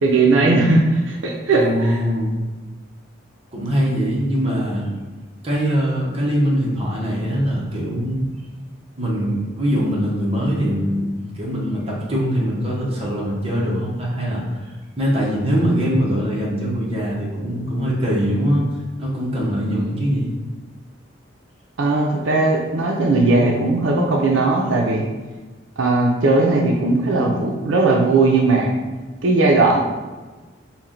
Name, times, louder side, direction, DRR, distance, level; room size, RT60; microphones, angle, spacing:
voice 1, 0.0-2.0 21.8-25.0 25.8-28.7 29.2-29.8, right 3 dB, 75° right, -1 dB, 0.5 m, -17 dB
voice 2, 1.5-2.4 3.5-4.9 5.4-8.3 9.0-14.6 15.0-18.6 19.0-20.3, equal, 30° right, -5 dB, 0.9 m, -22 dB
4.3 x 2.1 x 3.7 m, 1.3 s
head